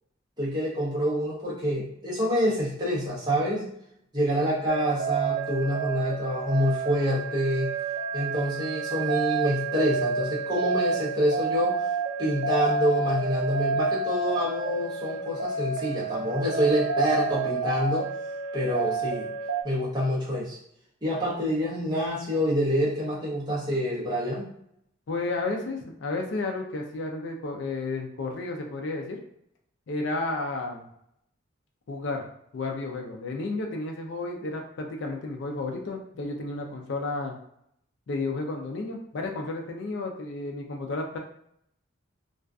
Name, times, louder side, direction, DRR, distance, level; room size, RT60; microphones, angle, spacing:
voice 1, 0.4-3.7 4.1-7.7 8.1-11.8 12.2-18.1 18.5-19.3 19.6-20.6 21.0-24.5, equal, 20° right, -6 dB, 0.7 m, -27 dB
sound 1, 4.7-19.6, right 4 dB, 85° right, 0.4 m, -30 dB
voice 2, 25.1-29.2 29.9-30.9 31.9-32.2 32.5-37.3 38.1-41.2, left 3 dB, 60° left, 2 dB, 0.4 m, -32 dB
2.5 x 2.3 x 2.3 m, 0.72 s
head